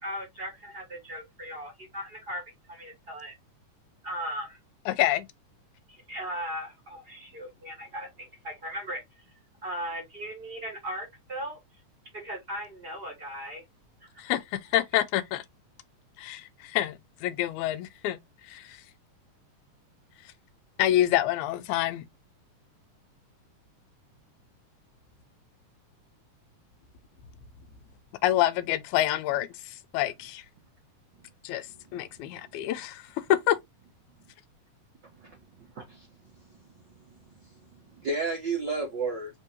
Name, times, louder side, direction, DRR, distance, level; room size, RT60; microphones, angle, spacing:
voice 1, 0.0-2.4 2.7-3.4 4.0-4.6 5.9-9.0 9.6-11.6 12.1-13.6 14.0-14.1, equal, 30° right, 1.1 m, -37 dB
voice 2, 4.9-5.3 14.2-15.4 16.2-18.2 18.5-18.8 20.8-22.0 28.2-30.4 31.4-31.7 31.9-33.0 33.3-33.6, left 13 dB, 80° left, 1.9 m, -27 dB
voice 3, 35.0-36.4 37.0-37.5 38.0-39.3, right 3 dB, 75° right, 1.0 m, -33 dB
4.5 x 3.4 x 2.9 m
omnidirectional pair, 3.6 m